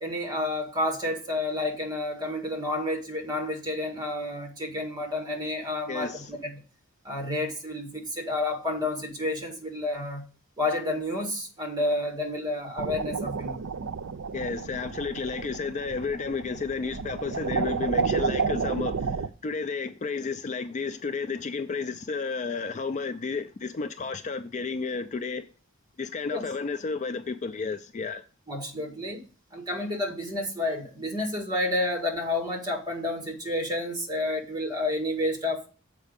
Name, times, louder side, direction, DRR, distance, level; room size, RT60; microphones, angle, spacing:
voice 1, 0.0-6.5 7.0-10.2 10.6-13.7 26.3-26.4 28.5-29.2 29.5-35.7, left 1 dB, 20° right, 1.8 m, -30 dB
voice 2, 5.9-6.3 14.3-25.5 26.0-28.2, left 4 dB, 35° left, 0.4 m, -32 dB
sound 1, 12.8-19.3, right 5 dB, 65° right, 0.5 m, -31 dB
7.4 x 5.0 x 5.1 m
head